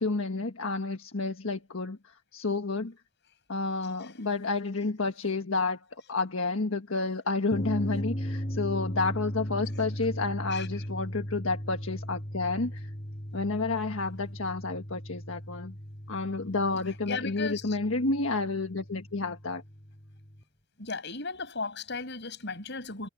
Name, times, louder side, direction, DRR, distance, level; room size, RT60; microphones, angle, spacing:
voice 1, 0.0-2.0 2.3-2.9 3.5-5.8 6.1-12.9 13.3-15.7 16.1-19.6, left 3 dB, 80° left, 1.5 m, -30 dB
sound 1, 7.5-20.4, equal, 30° left, 7.4 m, -37 dB
voice 2, 17.1-17.8 20.8-23.1, left 4 dB, 60° left, 7.4 m, -36 dB
head